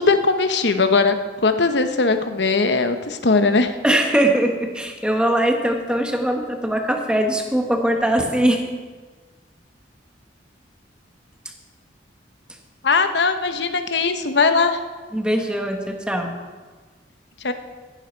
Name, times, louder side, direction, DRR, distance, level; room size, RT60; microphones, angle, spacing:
voice 1, 0.0-3.7 12.8-14.8 17.4-17.5, left 4 dB, 70° left, 8 dB, 0.9 m, -19 dB
voice 2, 3.8-8.6 15.1-16.3, right 1 dB, 5° right, 3 dB, 1.3 m, -21 dB
15.0 x 11.0 x 4.5 m, 1.4 s
head